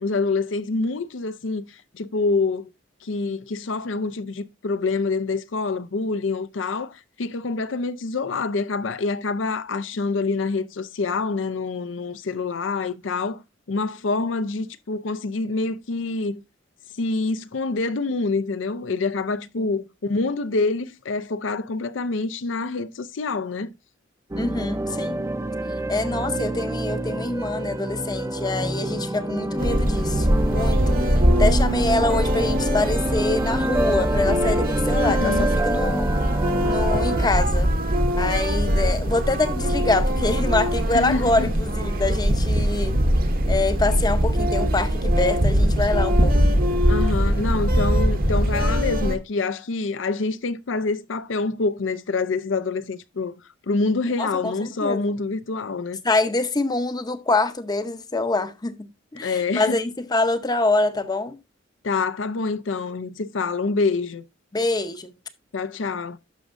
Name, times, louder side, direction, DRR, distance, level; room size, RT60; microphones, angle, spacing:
voice 1, 0.0-2.7 3.0-13.4 13.7-16.4 17.0-23.7 34.9-35.6 40.9-41.5 46.9-53.4 53.7-56.0 59.2-59.8 61.8-64.2 65.5-66.2, left 3 dB, 70° left, 0.6 m, -26 dB
voice 2, 24.3-25.2 25.9-36.1 36.6-37.7 38.1-43.0 43.5-46.4 54.2-55.1 56.0-61.4 64.5-65.1, left 2 dB, 20° left, 0.7 m, -25 dB
sound 1, 24.3-37.3, right 1 dB, 15° right, 0.6 m, -27 dB
sound 2, 29.6-49.2, equal, 50° right, 1.0 m, -22 dB
11.5 x 6.2 x 2.5 m
head